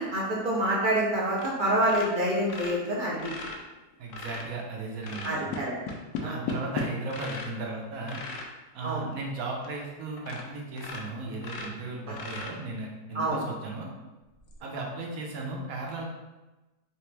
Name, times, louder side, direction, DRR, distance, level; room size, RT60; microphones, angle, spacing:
voice 1, 0.0-3.2 5.2-5.7 6.2-6.4 8.8-9.0 12.1-12.2 13.1-13.4, right 1 dB, 50° right, -5 dB, 0.6 m, -27 dB
sound 1, 1.4-1.5 1.8-4.5 5.0-7.6 8.0-8.5 9.1-9.2 9.6-9.7 10.2-10.5 10.7-12.9 14.4-14.5, left 4 dB, 85° left, 1.1 m, -37 dB
voice 2, 4.0-5.5 6.2-8.2 8.7-13.9 14.6-16.1, right 2 dB, 70° right, -1 dB, 1.1 m, -36 dB
3.4 x 2.9 x 3.2 m, 1.1 s
omnidirectional pair, 1.6 m